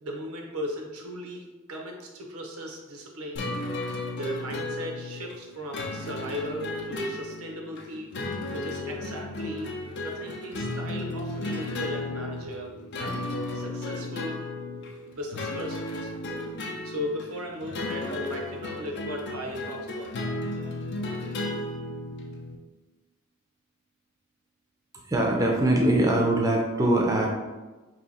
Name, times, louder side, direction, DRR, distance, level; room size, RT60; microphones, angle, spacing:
voice 1, 0.0-3.5 4.1-8.1 8.5-9.7 10.0-13.2 13.5-14.4 15.1-16.1 16.8-20.3, equal, 90° right, 1 dB, 0.7 m, -37 dB
sound 1, 3.4-22.6, left 2 dB, 55° left, 0.5 m, -34 dB
voice 2, 25.1-27.3, right 1 dB, 15° right, 0 dB, 0.5 m, -22 dB
2.9 x 2.7 x 4.0 m, 1.2 s
head